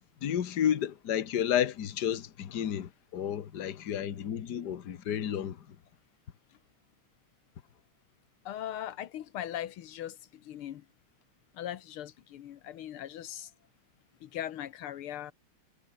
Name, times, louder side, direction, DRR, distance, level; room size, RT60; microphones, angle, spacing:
voice 1, 0.2-5.6, left 9 dB, 55° left, 1.8 m, -31 dB
voice 2, 8.5-10.8 11.5-13.5 14.2-15.3, left 11 dB, 85° left, 2.0 m, -39 dB
omnidirectional pair, 2.3 m